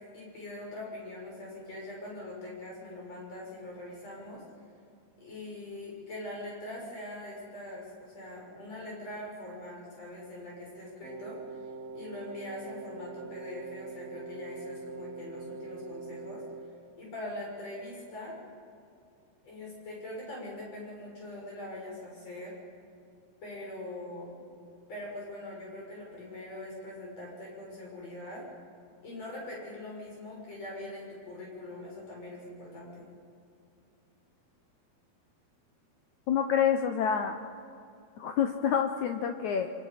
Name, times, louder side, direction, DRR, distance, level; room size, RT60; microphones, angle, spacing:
voice 1, 0.0-4.4 5.2-16.4 17.0-18.4 19.4-22.5 23.4-24.3 24.9-28.4 29.0-33.1, left 1 dB, 40° left, -3 dB, 7.7 m, -42 dB
Wind instrument woodwind instrument, 11.0-16.8, right 4 dB, 70° right, 3.2 m, -43 dB
voice 2, 36.3-37.4 38.2-39.7, left 8 dB, 80° left, 6 dB, 1.7 m, -27 dB
26.0 x 25.5 x 5.8 m, 2.5 s
omnidirectional pair, 4.6 m